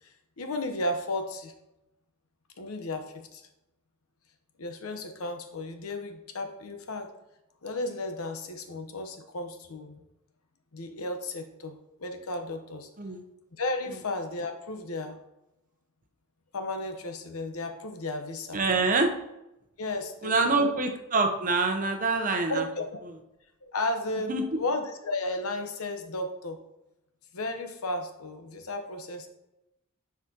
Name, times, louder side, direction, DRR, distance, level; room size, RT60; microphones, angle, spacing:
voice 1, 0.0-1.5 2.6-3.4 4.6-7.1 7.6-10.0 10.7-12.9 13.6-15.2 16.5-18.6 19.8-20.7 22.5-23.0 23.6-26.6 27.3-29.3, left 2 dB, 80° left, 6 dB, 0.9 m, -34 dB
voice 2, 18.5-19.1 20.2-22.7 24.3-24.4, right 3 dB, 40° right, 5 dB, 0.8 m, -25 dB
9.9 x 4.9 x 2.9 m, 0.89 s
head